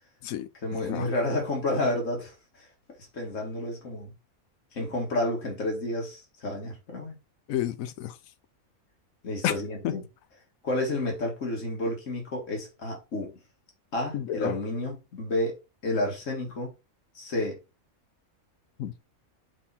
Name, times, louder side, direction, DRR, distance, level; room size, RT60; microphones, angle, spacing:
voice 1, 0.6-2.7 3.1-4.1 4.7-7.1 9.2-10.0 10.6-13.3 13.9-15.6 15.8-16.7 17.1-17.6, left 1 dB, 65° left, 2.4 m, -30 dB
voice 2, 7.5-8.2 9.4-9.5 9.8-9.9 14.1-14.5 18.8-19.0, left 11 dB, 85° left, 1.1 m, -30 dB
6.1 x 3.7 x 4.2 m
omnidirectional pair, 1.4 m